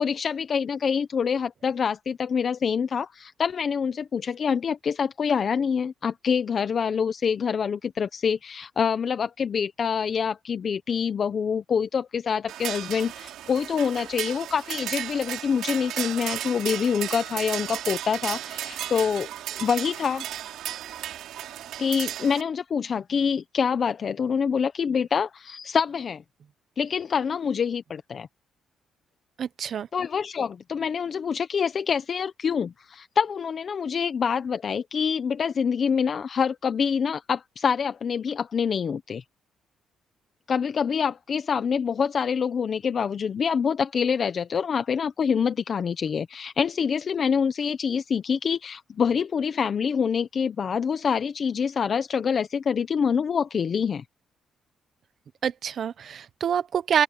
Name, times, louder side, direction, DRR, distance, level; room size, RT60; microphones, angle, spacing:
voice 1, 0.0-20.2 21.4-26.2 26.8-28.3 29.9-39.2 40.5-54.0, left 6 dB, 50° left, 1.0 m, -26 dB
sound 1, 12.5-22.4, right 12 dB, 85° right, 3.2 m, -34 dB
voice 2, 29.4-29.9 55.4-57.0, right 8 dB, 55° right, 1.1 m, -26 dB
open air
cardioid pair, 90°, 0 cm